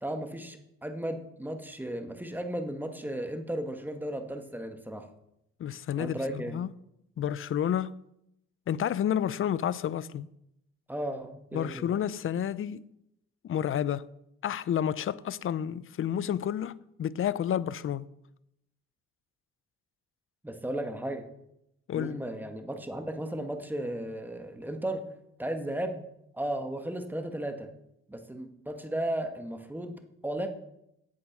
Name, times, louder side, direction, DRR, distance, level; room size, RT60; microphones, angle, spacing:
voice 1, 0.0-5.1 6.0-6.6 10.9-11.9 20.4-21.2 21.9-25.0 25.4-26.0 26.3-27.7 28.1-29.9 30.2-30.5, right 1 dB, 5° right, 1.4 m, -35 dB
voice 2, 5.6-6.7 7.2-8.0 8.7-10.3 11.5-12.9 13.4-14.1 14.4-18.1 21.9-22.2, left 9 dB, 45° left, 0.5 m, -30 dB
8.5 x 8.1 x 6.0 m
cardioid pair, 90°, 30 cm